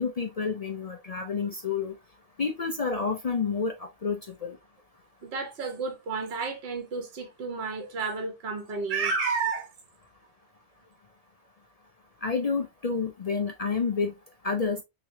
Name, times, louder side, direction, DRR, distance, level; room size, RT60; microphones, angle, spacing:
voice 1, 0.0-2.0 2.4-4.6 12.2-14.1 14.4-14.8, left 5 dB, 50° left, 0.4 m, -29 dB
voice 2, 5.2-9.7, right 4 dB, 60° right, 1.1 m, -31 dB
3.6 x 3.0 x 2.7 m
omnidirectional pair, 1.2 m